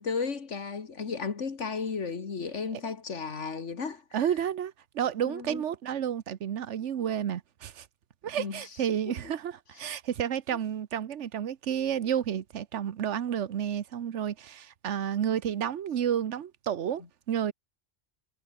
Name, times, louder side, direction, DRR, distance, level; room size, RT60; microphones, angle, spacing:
voice 1, 0.0-4.0 5.2-5.6 8.4-8.7, left 5 dB, 85° left, 2.2 m, -34 dB
voice 2, 4.1-7.9 8.2-17.5, right 9 dB, 80° right, 1.2 m, -31 dB
omnidirectional pair, 1.2 m